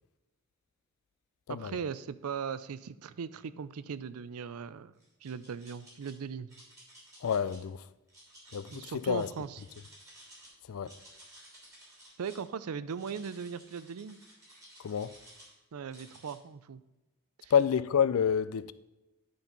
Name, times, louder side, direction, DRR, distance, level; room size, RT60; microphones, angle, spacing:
voice 1, 1.5-4.9 5.2-6.5 8.7-9.6 12.2-14.2 15.7-16.8 17.4-17.5, right 6 dB, 80° right, 0.4 m, -39 dB
sound 1, 5.0-6.1 6.5-7.6 8.1-10.5 10.8-12.5 12.9-15.5 15.9-16.3, right 1 dB, 15° right, 3.1 m, -55 dB
voice 2, 7.2-7.8 8.5-9.3 10.7-10.9 14.8-15.1 17.5-18.7, left 7 dB, 70° left, 0.4 m, -28 dB
10.5 x 4.4 x 5.3 m
head